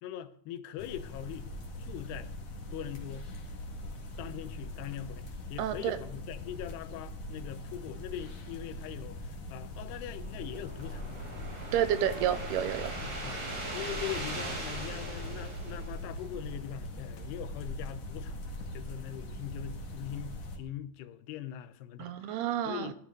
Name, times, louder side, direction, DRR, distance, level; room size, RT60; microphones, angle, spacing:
voice 1, 0.0-1.5 1.8-2.3 2.7-3.3 4.2-11.3 13.0-13.4 13.7-18.4 18.7-22.4 22.6-22.9, left 12 dB, 90° left, 2.9 m, -42 dB
sound 1, 0.8-20.6, left 1 dB, 45° left, 2.6 m, -41 dB
voice 2, 5.6-6.0 11.7-12.9 22.0-22.9, right 10 dB, 85° right, 2.8 m, -30 dB
sound 2, 9.9-16.5, right 2 dB, 55° right, 6.4 m, -41 dB
17.0 x 11.5 x 3.8 m
omnidirectional pair, 4.6 m